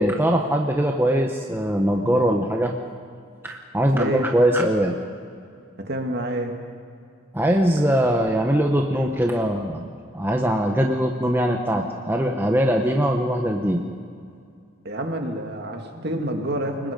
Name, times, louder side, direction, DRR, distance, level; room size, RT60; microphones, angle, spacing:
voice 1, 0.0-2.7 3.4-4.9 7.3-9.9 10.1-13.8, equal, 10° right, 2 dB, 1.0 m, -21 dB
voice 2, 3.9-4.3 5.8-6.5 14.8-16.9, right 1 dB, 50° right, 3 dB, 2.3 m, -27 dB
29.5 x 20.0 x 5.3 m, 2.3 s
head